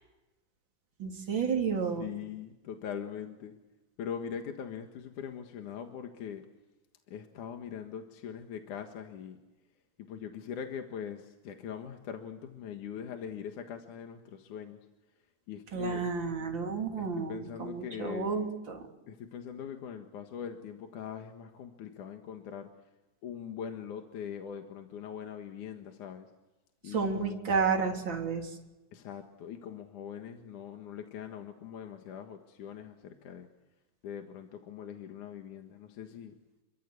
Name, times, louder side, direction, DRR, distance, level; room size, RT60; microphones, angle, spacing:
voice 1, 1.0-2.1 15.7-18.8 26.8-28.5, right 5 dB, 35° right, 1 dB, 4.0 m, -31 dB
voice 2, 2.0-3.6 4.0-6.5 7.1-9.4 10.0-14.8 15.5-16.0 17.0-18.3 19.1-22.7 23.2-26.3 26.8-27.9 28.9-33.5 34.0-36.3, left 8 dB, 65° left, 5 dB, 3.0 m, -42 dB
29.5 x 23.5 x 8.3 m, 1.1 s
omnidirectional pair, 3.9 m